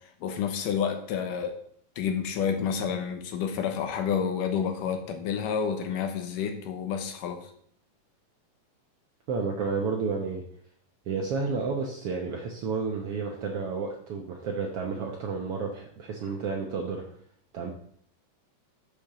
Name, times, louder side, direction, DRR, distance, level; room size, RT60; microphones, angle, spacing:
voice 1, 0.2-1.5 2.0-7.5, left 7 dB, 80° left, 6 dB, 2.6 m, -29 dB
voice 2, 9.3-10.4 11.1-17.0 17.5-17.7, right 4 dB, 70° right, 1 dB, 1.4 m, -31 dB
7.3 x 5.1 x 6.6 m, 0.63 s
omnidirectional pair, 3.8 m